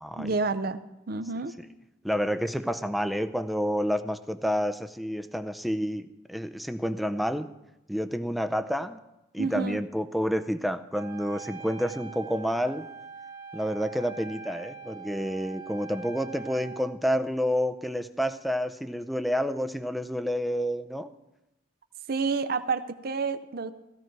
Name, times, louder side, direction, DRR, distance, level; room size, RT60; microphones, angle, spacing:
voice 1, 0.2-0.8 1.1-1.5 9.4-9.8 22.1-23.7, right 4 dB, 50° right, 10 dB, 0.6 m, -29 dB
voice 2, 2.0-7.5 7.9-9.0 9.3-12.9 13.5-21.1, equal, ahead, 8 dB, 0.5 m, -29 dB
Wind instrument woodwind instrument, 10.9-16.9, right 5 dB, 20° right, 1.1 m, -43 dB
16.0 x 15.0 x 4.6 m, 0.93 s
head